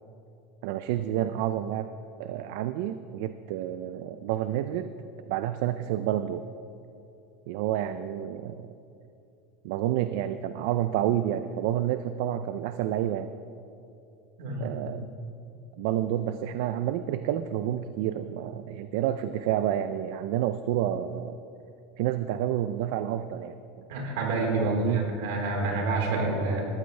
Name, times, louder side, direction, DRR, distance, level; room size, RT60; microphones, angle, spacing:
voice 1, 0.6-1.9 2.2-4.9 5.3-6.4 7.5-8.7 9.6-13.3 14.6-15.1 15.7-21.4 22.0-23.9 24.6-25.1, right 11 dB, 65° right, 10 dB, 0.5 m, -29 dB
voice 2, 14.4-14.8 23.9-26.7, right 2 dB, 80° right, -1 dB, 4.3 m, -28 dB
20.0 x 14.5 x 3.4 m, 2.6 s
supercardioid pair, 160°, 0 cm